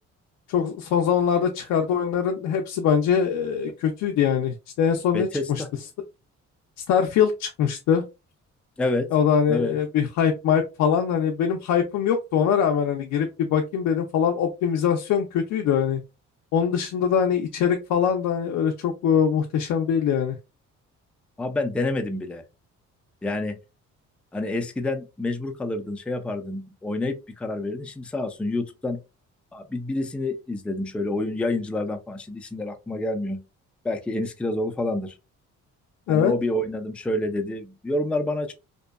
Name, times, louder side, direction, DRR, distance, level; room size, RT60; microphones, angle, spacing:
voice 1, 0.5-5.6 6.9-8.0 9.1-16.0 16.5-20.4 36.1-36.3, left 7 dB, 70° left, 0.4 m, -23 dB
voice 2, 5.1-5.7 8.8-9.1 9.5-9.8 21.4-22.4 23.2-23.5 24.3-29.0 29.5-33.4 33.8-35.1 36.1-38.5, left 2 dB, 5° left, 0.3 m, -28 dB
2.6 x 2.1 x 2.3 m
cardioid pair, 90°, 30 cm